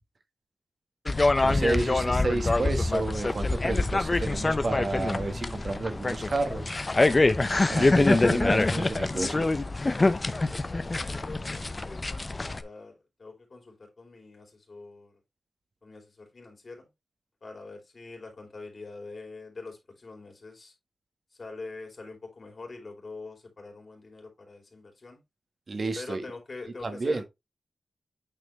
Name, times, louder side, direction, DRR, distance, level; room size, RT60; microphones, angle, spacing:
sound 1, 1.1-12.6, left 2 dB, 30° left, 0.7 m, -25 dB
voice 1, 1.4-6.8 7.7-9.5 25.7-26.2 26.8-27.2, right 2 dB, 50° right, 1.5 m, -31 dB
voice 2, 10.5-15.1 15.8-16.9 17.4-20.7 21.3-25.2 25.9-27.2, left 3 dB, 45° left, 3.3 m, -44 dB
9.0 x 4.3 x 3.2 m
wide cardioid pair, 100°, 0 cm